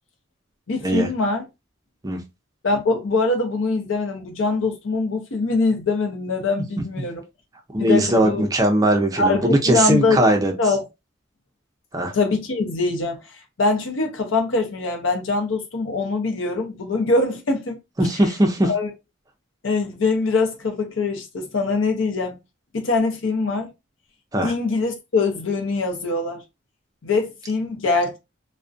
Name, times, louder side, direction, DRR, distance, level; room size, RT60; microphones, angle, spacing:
voice 1, 0.7-1.4 2.6-7.2 7.8-8.5 9.2-10.2 10.6-10.8 12.1-13.2 13.6-17.8 18.6-18.9 19.6-22.4 22.7-23.7 24.4-26.4 27.0-28.2, left 3 dB, 85° left, 0.6 m, -23 dB
voice 2, 7.7-10.5 11.9-12.1 18.0-18.7 24.3-24.5, right 1 dB, 20° right, 0.4 m, -19 dB
2.4 x 2.1 x 2.5 m
head